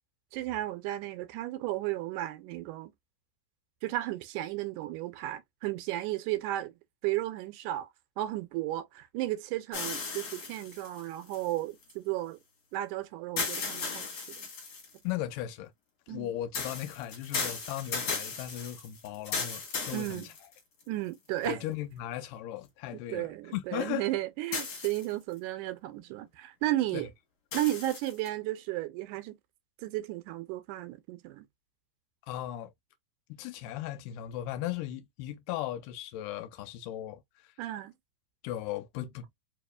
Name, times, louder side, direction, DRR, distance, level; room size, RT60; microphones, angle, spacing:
voice 1, 0.3-2.9 3.8-6.7 7.0-7.9 8.2-12.4 12.7-14.5 16.1-16.4 19.9-20.3 20.9-21.6 23.1-27.1 27.5-29.4 29.8-31.4 37.6-37.9, right 15 dB, 80° right, 2.0 m, -34 dB
sound 1, 9.7-11.9 13.4-15.0 16.5-20.8 21.4-21.5 24.5-25.3 27.5-28.3, left 4 dB, 50° left, 2.2 m, -36 dB
voice 2, 15.0-15.7 16.1-20.3 21.5-24.1 26.9-27.0 32.3-32.7 33.3-37.2 38.4-39.3, left 13 dB, 85° left, 2.2 m, -37 dB
4.7 x 2.8 x 2.2 m
omnidirectional pair, 3.7 m